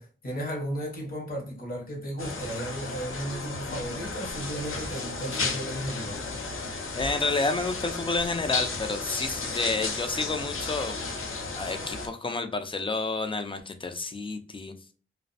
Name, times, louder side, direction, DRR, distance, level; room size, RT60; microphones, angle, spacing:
voice 1, 0.0-6.2, right 1 dB, 45° left, 0.8 m, -35 dB
sound 1, 2.2-12.1, left 3 dB, 80° left, 0.5 m, -34 dB
voice 2, 6.9-11.3 11.5-14.7, left 3 dB, 25° left, 0.4 m, -30 dB
2.4 x 2.0 x 2.6 m
wide cardioid pair, 115°, 21 cm